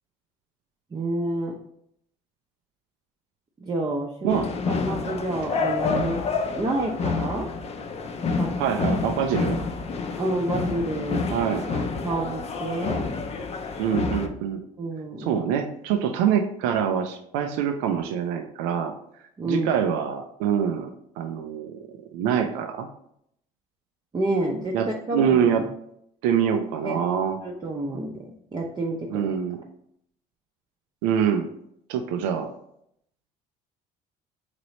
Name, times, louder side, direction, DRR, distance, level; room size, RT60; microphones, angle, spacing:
voice 1, 0.9-1.6 3.6-6.3 6.6-7.5 8.4-8.5 10.2-11.3 11.7-13.1 14.8-15.3 19.4-19.7 24.1-25.6 26.8-29.3, right 2 dB, 25° right, -2 dB, 0.6 m, -29 dB
sound 1, 4.3-14.3, left 4 dB, 40° left, 0.5 m, -28 dB
voice 2, 8.6-9.6 11.3-11.8 13.8-14.6 15.2-18.9 19.5-20.9 21.2-21.8 22.1-22.9 24.7-25.6 26.2-27.4 29.1-29.6 31.0-31.5 31.9-32.5, right 8 dB, 85° right, 5 dB, 0.4 m, -25 dB
3.1 x 2.9 x 3.9 m, 0.72 s
supercardioid pair, 85°, 17 cm